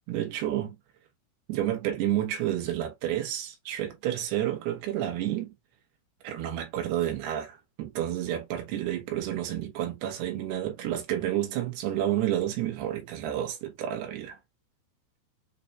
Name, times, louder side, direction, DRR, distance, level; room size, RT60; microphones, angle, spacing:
voice 1, 0.1-0.8 1.5-5.5 6.2-14.4, right 12 dB, 85° right, 3.2 m, -30 dB
6.7 x 2.4 x 2.6 m
omnidirectional pair, 4.5 m